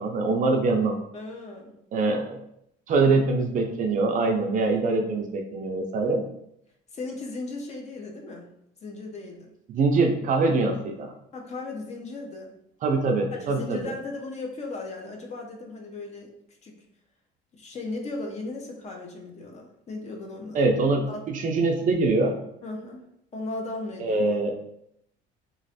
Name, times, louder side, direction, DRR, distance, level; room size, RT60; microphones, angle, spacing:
voice 1, 0.0-1.0 1.9-2.4 2.9-6.2 9.7-11.1 12.8-13.9 20.5-21.0 21.3-22.3 24.0-24.5, right 3 dB, 40° right, 4 dB, 0.4 m, -23 dB
voice 2, 1.1-1.7 6.9-8.4 8.8-9.5 11.3-12.5 13.4-16.3 16.6-16.8 17.5-20.7 21.1-21.3 22.6-23.0 23.3-24.2, left 2 dB, 35° left, 1 dB, 0.6 m, -36 dB
3.1 x 2.4 x 2.7 m, 0.75 s
cardioid pair, 120°, 20 cm